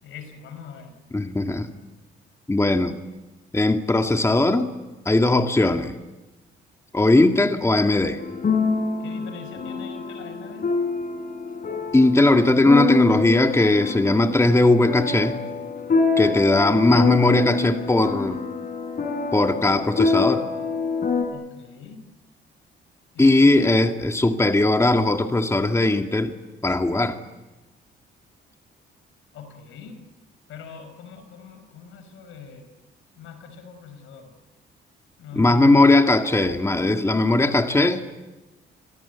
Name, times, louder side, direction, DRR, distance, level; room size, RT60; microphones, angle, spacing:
voice 1, 0.0-0.9 9.0-10.7 21.3-22.0 23.1-23.6 29.3-30.0 30.5-32.7 33.2-34.3 35.2-35.8, left 6 dB, 85° left, 9 dB, 5.3 m, -41 dB
voice 2, 1.1-1.7 2.5-2.9 3.5-4.7 5.1-6.0 6.9-8.2 11.9-15.4 16.2-18.4 19.3-20.4 23.2-26.3 26.6-27.2 35.3-38.1, left 2 dB, 15° left, 5 dB, 2.0 m, -19 dB
sound 1, 8.2-21.3, left 4 dB, 45° left, 5.0 m, -26 dB
28.5 x 22.0 x 8.3 m, 1.1 s
cardioid pair, 90°, 20 cm